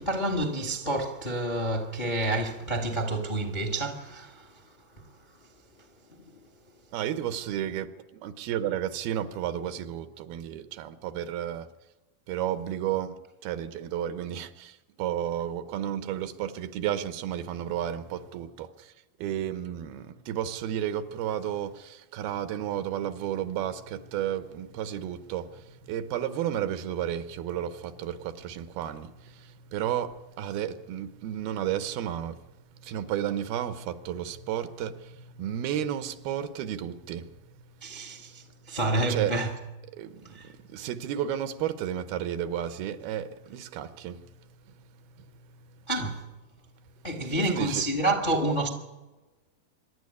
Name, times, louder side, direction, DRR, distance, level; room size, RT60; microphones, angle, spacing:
voice 1, 0.0-4.6 37.8-39.5 40.2-40.5 45.9-46.2 47.0-48.7, right 2 dB, 30° left, 0.8 m, -29 dB
voice 2, 6.9-11.7 12.3-18.9 19.2-32.4 32.7-37.3 37.6-38.7 39.1-39.4 39.9-45.8 47.4-47.8, right 10 dB, 80° right, 2.8 m, -33 dB
25.5 x 11.5 x 9.7 m
omnidirectional pair, 4.4 m